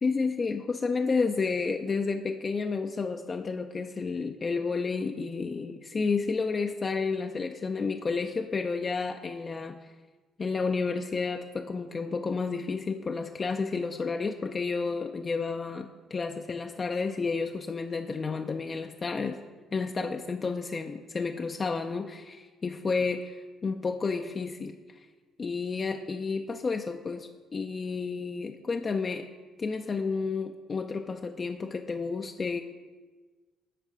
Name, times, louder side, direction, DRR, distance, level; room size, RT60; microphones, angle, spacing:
voice 1, 0.0-9.9 10.4-19.4 19.7-25.0 25.4-29.3 29.6-32.6, left 4 dB, 35° left, 4 dB, 0.4 m, -31 dB
10.0 x 4.1 x 4.9 m, 1.3 s
supercardioid pair, 80°, 0 cm